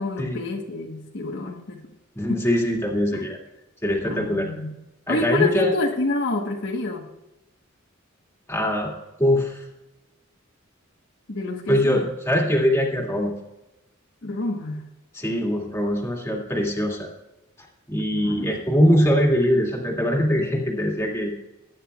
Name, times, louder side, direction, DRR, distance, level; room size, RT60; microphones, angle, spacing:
voice 1, 0.0-1.9 2.3-2.5 3.1-3.3 4.0-4.8 5.1-7.1 11.3-12.1 14.2-14.9 18.0-18.5, left 2 dB, 60° left, 1 dB, 1.3 m, -28 dB
voice 2, 2.1-3.4 3.8-4.5 5.1-5.7 8.5-8.9 9.2-9.6 11.7-13.3 15.1-17.1 17.9-21.3, equal, 15° left, -1 dB, 2.2 m, -22 dB
19.0 x 9.6 x 2.4 m, 0.98 s
head